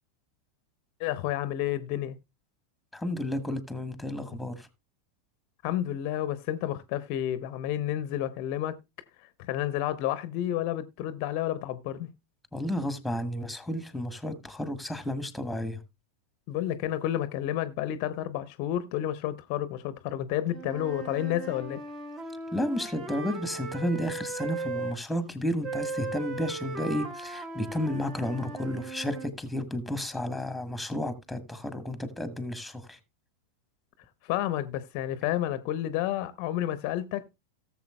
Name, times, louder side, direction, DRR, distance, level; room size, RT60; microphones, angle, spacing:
voice 1, 1.0-2.2 5.6-8.8 9.5-12.1 16.5-21.8 34.2-37.3, left 12 dB, 45° left, 0.7 m, -30 dB
voice 2, 2.9-4.7 12.5-15.8 22.5-33.0, left 1 dB, ahead, 1.3 m, -32 dB
Wind instrument woodwind instrument, 20.5-25.0 25.6-29.3, right 3 dB, 30° right, 1.2 m, -37 dB
18.0 x 7.1 x 2.2 m
figure-of-eight pair, 90°, 0 cm